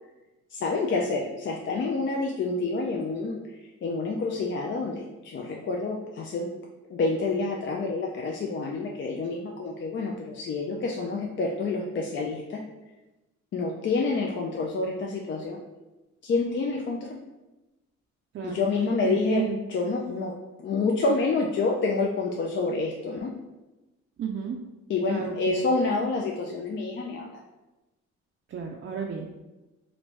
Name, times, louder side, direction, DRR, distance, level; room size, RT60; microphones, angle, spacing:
voice 1, 0.5-6.5 6.9-12.6 13.5-15.6 16.2-17.2 18.4-19.4 19.7-20.3 20.6-23.3 24.9-27.4, left 3 dB, 40° left, 0 dB, 0.4 m, -28 dB
voice 2, 19.0-19.6 24.2-24.6 25.1-25.6 28.5-29.3, right 6 dB, 45° right, 1 dB, 0.4 m, -32 dB
3.1 x 2.5 x 3.1 m, 1.1 s
cardioid pair, 90°, 30 cm